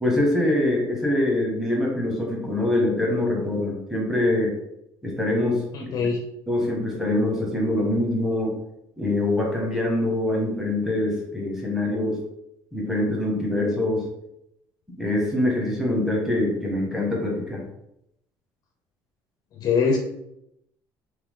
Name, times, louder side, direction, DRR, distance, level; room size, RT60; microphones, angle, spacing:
voice 1, 0.0-4.5 5.0-5.9 6.5-8.6 9.0-12.2 12.7-14.0 15.0-17.6, left 1 dB, 5° right, -2 dB, 1.0 m, -24 dB
voice 2, 5.7-6.2 19.5-20.0, left 5 dB, 45° left, 2 dB, 0.5 m, -22 dB
3.4 x 2.9 x 3.6 m, 0.81 s
cardioid pair, 150°, 8 cm